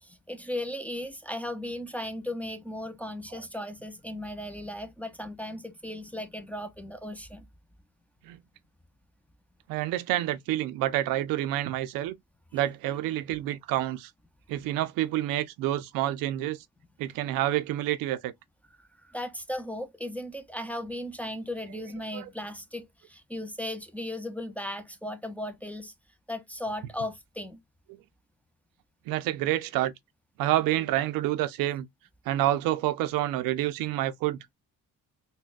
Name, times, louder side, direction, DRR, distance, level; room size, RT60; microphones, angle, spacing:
voice 1, 0.0-7.5 12.5-12.6 18.8-25.9 26.3-27.6, left 1 dB, 5° left, 0.4 m, -36 dB
voice 2, 9.7-12.1 12.5-14.1 14.5-16.6 17.0-18.3 22.1-22.3 29.1-29.9 30.4-31.9 32.3-34.5, right 14 dB, 85° right, 0.5 m, -28 dB
3.9 x 2.2 x 2.3 m
cardioid pair, 110°, 34 cm